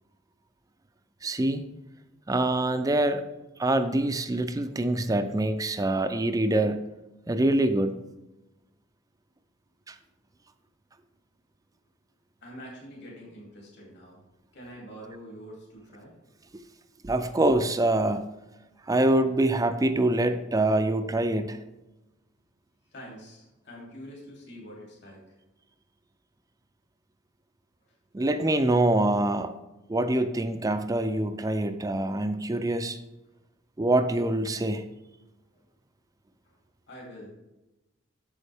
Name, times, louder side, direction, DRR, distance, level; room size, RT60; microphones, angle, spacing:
voice 1, 1.2-1.6 2.3-3.2 3.6-6.9 7.3-8.0 9.9-10.0 17.0-18.3 18.9-21.6 28.1-29.5 29.9-33.0 33.8-34.9, right 1 dB, 20° right, 9 dB, 0.4 m, -25 dB
voice 2, 12.4-14.2 14.5-16.2 22.9-25.4 35.5-35.7 36.4-36.6 36.9-37.3, equal, 60° left, -2 dB, 2.7 m, -45 dB
8.4 x 7.1 x 3.4 m, 0.99 s
head